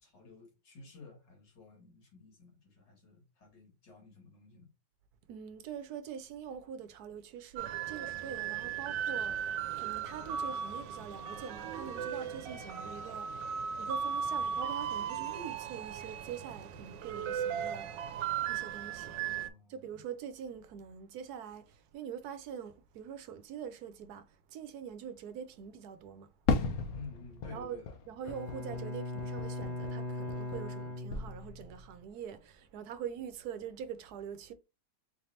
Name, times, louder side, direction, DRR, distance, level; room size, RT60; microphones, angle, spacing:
voice 1, 0.0-4.7 19.0-19.9 26.9-28.0, left 4 dB, 90° left, 2.5 m, -52 dB
voice 2, 5.3-13.5 13.8-17.9 18.5-19.1 19.7-26.3 27.5-27.8 28.1-34.5, right 8 dB, 70° right, 1.1 m, -44 dB
sound 1, 7.6-19.5, right 8 dB, 90° right, 1.3 m, -37 dB
Fireworks, 26.5-30.8 31.1-31.9, left 4 dB, 65° left, 1.1 m, -36 dB
Bowed string instrument, 28.2-31.8, left 1 dB, 40° left, 1.5 m, -39 dB
4.2 x 3.3 x 2.7 m
omnidirectional pair, 1.9 m